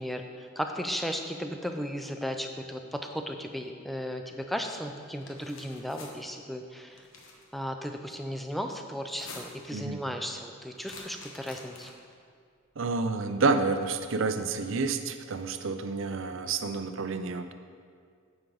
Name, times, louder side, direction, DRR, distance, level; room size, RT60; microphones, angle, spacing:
voice 1, 0.0-7.0 7.5-11.9, equal, ahead, 4 dB, 0.4 m, -35 dB
sound 1, 5.1-6.1 6.9-7.5 9.0-9.7 10.8-12.1, left 3 dB, 65° left, 1.2 m, -47 dB
voice 2, 9.7-10.0 12.8-17.5, right 4 dB, 65° right, 8 dB, 0.5 m, -29 dB
9.9 x 7.3 x 3.9 m, 2.2 s
head